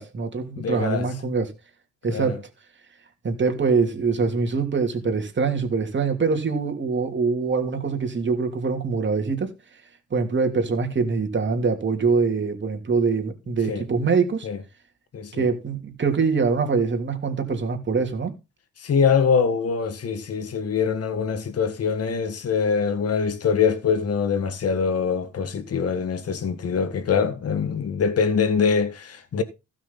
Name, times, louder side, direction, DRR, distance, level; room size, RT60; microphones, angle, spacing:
voice 1, 0.0-1.5 2.0-2.4 3.2-9.5 10.1-14.5 15.3-18.3, right 4 dB, 40° right, 3.1 m, -24 dB
voice 2, 0.6-1.1 2.1-2.4 13.7-13.8 14.4-14.6 15.1-15.4 18.8-29.4, left 6 dB, 50° left, 1.6 m, -23 dB
16.0 x 6.3 x 4.1 m
cardioid pair, 90°, 30 cm